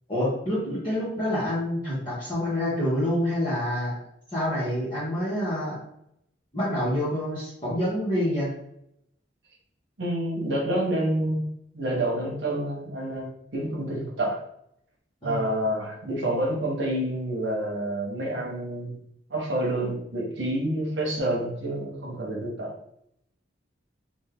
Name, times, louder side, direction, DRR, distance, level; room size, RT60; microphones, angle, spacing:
voice 1, 0.1-3.9 4.3-5.8 6.5-8.5 15.2-15.4, left 1 dB, 25° left, -11 dB, 1.1 m, -27 dB
voice 2, 10.0-11.4 11.7-14.4 15.2-22.8, right 1 dB, 70° right, -1 dB, 1.1 m, -28 dB
3.5 x 2.5 x 3.6 m, 0.75 s
head